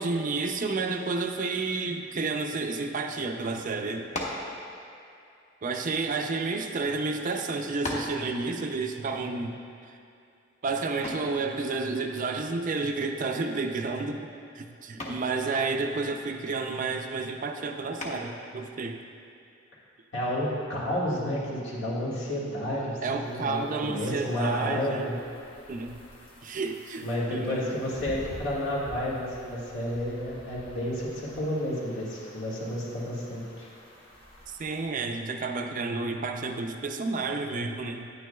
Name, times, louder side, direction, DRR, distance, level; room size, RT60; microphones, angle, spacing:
voice 1, 0.0-4.1 5.6-9.6 9.9-10.0 10.6-14.3 14.6-19.0 23.0-25.2 25.7-26.0 26.4-27.7 34.5-38.1, right 3 dB, 45° right, 5 dB, 0.4 m, -31 dB
sound 1, 4.1-4.5 5.5-6.6 7.3-7.4 7.8-8.2 11.0-11.4 13.3-13.7 14.0-14.4 15.0-15.3 18.0-18.4, left 1 dB, 40° left, 1.0 m, -36 dB
voice 2, 20.1-25.1 27.0-33.7, left 1 dB, 70° left, -7 dB, 1.9 m, -31 dB
sound 2, 23.2-34.9, equal, 90° left, 1.2 m, -49 dB
9.7 x 9.2 x 2.3 m, 2.5 s
head